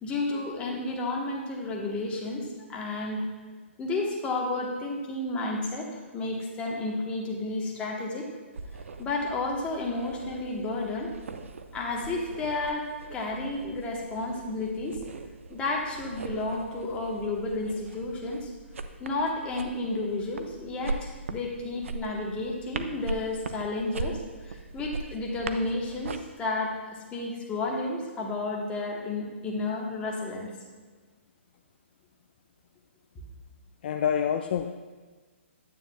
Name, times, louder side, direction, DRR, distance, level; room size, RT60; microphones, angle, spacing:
voice 1, 0.0-3.3 3.8-8.3 9.0-11.1 11.7-15.0 15.5-18.5 19.0-30.5, left 2 dB, 15° left, -1 dB, 1.1 m, -32 dB
wood balls friction scrape, 8.5-26.2, right 3 dB, 75° right, 0.5 m, -40 dB
voice 2, 33.8-34.7, left 8 dB, 45° left, 6 dB, 0.4 m, -26 dB
9.3 x 8.6 x 2.2 m, 1.4 s
hypercardioid pair, 140°, 7 cm